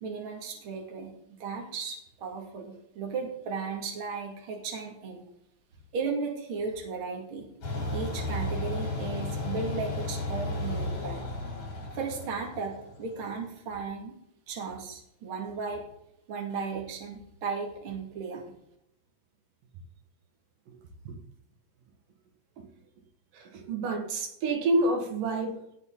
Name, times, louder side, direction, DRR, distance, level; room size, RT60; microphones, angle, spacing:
voice 1, 0.0-5.2 5.9-7.5 7.9-11.2 11.9-14.2 14.5-15.9 16.3-18.4, right 5 dB, 45° right, 1 dB, 2.7 m, -35 dB
sound 1, 7.6-13.3, left 2 dB, 60° left, 5.2 m, -34 dB
voice 2, 23.3-25.8, right 2 dB, 85° right, 3 dB, 3.3 m, -28 dB
17.5 x 6.7 x 3.9 m, 0.76 s
omnidirectional pair, 3.7 m